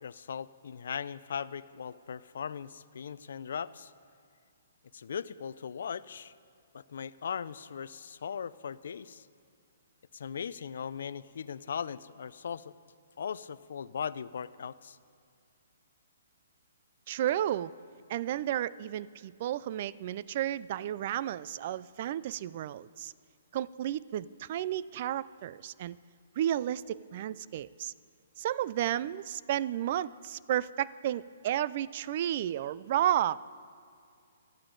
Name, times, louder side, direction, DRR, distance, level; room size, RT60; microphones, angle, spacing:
voice 1, 0.0-3.9 4.9-6.3 6.7-9.3 10.1-12.7 13.2-15.0, left 7 dB, 70° left, 17 dB, 0.4 m, -39 dB
voice 2, 17.1-17.7 18.1-23.1 23.5-26.0 26.4-27.9 28.4-33.4, right 11 dB, 45° right, 19 dB, 0.3 m, -32 dB
16.0 x 12.0 x 3.9 m, 2.4 s
hypercardioid pair, 150°, 0 cm